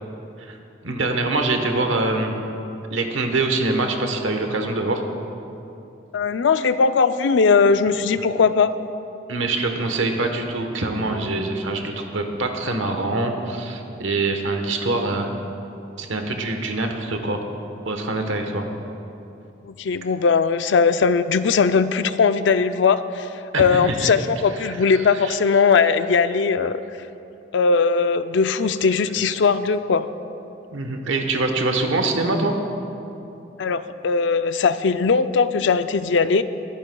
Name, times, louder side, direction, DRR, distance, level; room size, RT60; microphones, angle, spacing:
voice 1, 0.8-2.3 2.9-5.0 9.3-15.3 16.0-17.4 17.8-18.7 23.5-24.1 24.6-25.4 30.7-32.5, right 2 dB, 85° right, 4 dB, 1.1 m, -24 dB
voice 2, 6.1-8.7 19.7-23.3 23.6-26.8 27.5-30.1 33.6-36.4, left 5 dB, 70° left, 12 dB, 0.4 m, -19 dB
22.0 x 11.0 x 2.3 m, 2.8 s
head